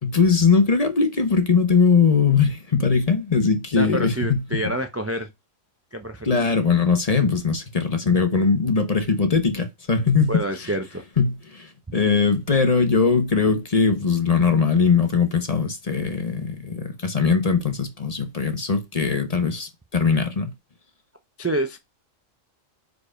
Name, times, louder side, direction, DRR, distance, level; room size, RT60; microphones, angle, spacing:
voice 1, 0.0-4.7 6.2-10.7 11.2-20.5, left 5 dB, 30° left, 1.0 m, -20 dB
voice 2, 3.8-5.3 5.9-6.4 10.3-11.0 21.4-21.8, right 1 dB, 20° right, 0.4 m, -27 dB
4.8 x 4.8 x 4.9 m
omnidirectional pair, 1.4 m